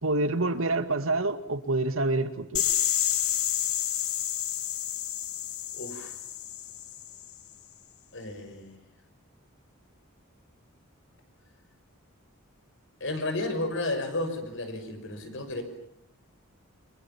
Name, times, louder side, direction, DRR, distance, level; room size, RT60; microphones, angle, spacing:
voice 1, 0.0-2.6, right 2 dB, 70° right, 10 dB, 2.1 m, -27 dB
sound 1, 2.5-7.3, left 11 dB, 85° left, 2.2 m, -29 dB
voice 2, 5.7-6.1 8.1-8.8 13.0-15.6, left 2 dB, 60° left, 7 dB, 6.1 m, -32 dB
29.5 x 27.5 x 7.3 m, 0.74 s
head